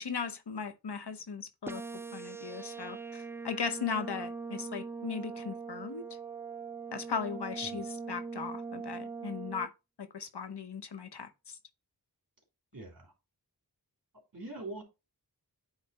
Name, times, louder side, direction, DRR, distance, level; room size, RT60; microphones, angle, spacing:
voice 1, 0.0-1.8 2.1-6.0 6.9-9.7 10.0-11.6, left 5 dB, 80° left, 0.9 m, -38 dB
sound 1, 1.7-9.7, right 4 dB, 5° right, 0.4 m, -41 dB
voice 2, 12.7-13.1 14.3-14.8, right 2 dB, 55° right, 3.0 m, -42 dB
9.1 x 3.3 x 4.1 m
wide cardioid pair, 45°, 40 cm